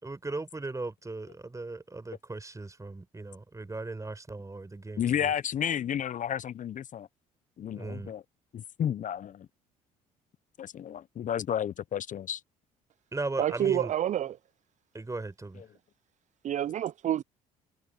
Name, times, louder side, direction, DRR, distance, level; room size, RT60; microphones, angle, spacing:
voice 1, 0.0-5.3 7.7-8.1 13.1-13.9 14.9-15.6, right 2 dB, 20° right, 4.8 m, -37 dB
voice 2, 5.0-7.1 7.6-8.2 8.5-9.5 10.6-12.4, left 9 dB, 45° left, 0.9 m, -32 dB
voice 3, 13.4-14.4 16.4-17.2, right 11 dB, 45° right, 0.5 m, -28 dB
hypercardioid pair, 60°, 18 cm